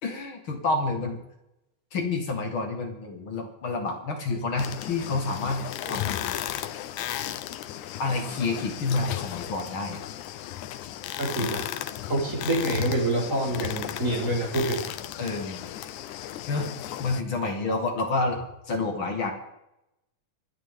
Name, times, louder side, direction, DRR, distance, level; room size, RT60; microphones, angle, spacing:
voice 1, 0.0-1.2 1.9-5.6 5.9-6.3 8.0-10.0 11.3-11.6 15.2-15.7 16.5-16.7 17.0-18.4 18.7-19.3, left 3 dB, 45° left, 2 dB, 2.1 m, -29 dB
sound 1, 4.6-17.2, left 12 dB, 75° left, 2.0 m, -35 dB
voice 2, 11.2-11.6 12.1-14.8, right 1 dB, 20° right, -4 dB, 4.9 m, -26 dB
25.5 x 8.9 x 3.7 m, 0.87 s
omnidirectional pair, 3.7 m